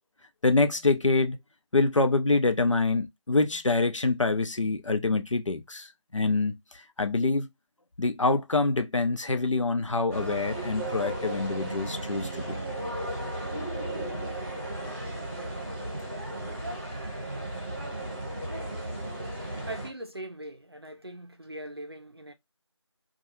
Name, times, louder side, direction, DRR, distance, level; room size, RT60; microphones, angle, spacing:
voice 1, 0.4-1.4 1.7-7.5 8.0-12.6, left 3 dB, 80° left, 0.6 m, -26 dB
sound 1, 10.1-19.9, right 1 dB, 25° right, 0.9 m, -35 dB
voice 2, 19.6-22.3, right 1 dB, 55° right, 0.5 m, -41 dB
2.3 x 2.2 x 3.0 m
figure-of-eight pair, 175°, 16 cm